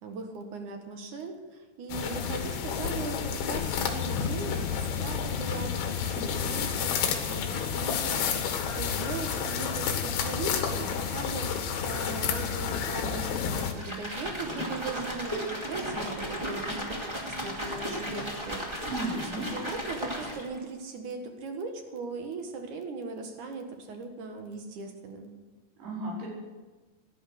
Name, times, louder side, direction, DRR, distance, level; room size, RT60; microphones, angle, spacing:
voice 1, 0.0-18.9 19.1-19.2 19.5-25.3, right 3 dB, 55° right, 4 dB, 2.7 m, -39 dB
sound 1, 1.9-13.7, left 7 dB, 70° left, 3.4 m, -30 dB
sound 2, 13.7-20.6, equal, 10° right, 1.3 m, -35 dB
voice 2, 18.9-19.5 25.8-26.3, right 2 dB, 80° right, -4 dB, 6.6 m, -34 dB
17.5 x 11.0 x 6.5 m, 1.3 s
omnidirectional pair, 4.7 m